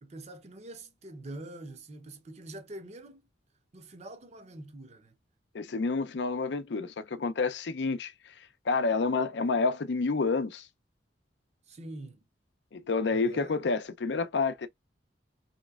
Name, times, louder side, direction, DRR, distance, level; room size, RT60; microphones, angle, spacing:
voice 1, 0.0-3.3 3.7-5.1 11.7-12.2 13.1-13.6, right 1 dB, 35° right, 0.6 m, -45 dB
voice 2, 5.5-8.1 8.7-10.7 12.7-14.7, left 4 dB, 70° left, 0.5 m, -29 dB
3.2 x 2.9 x 2.3 m
head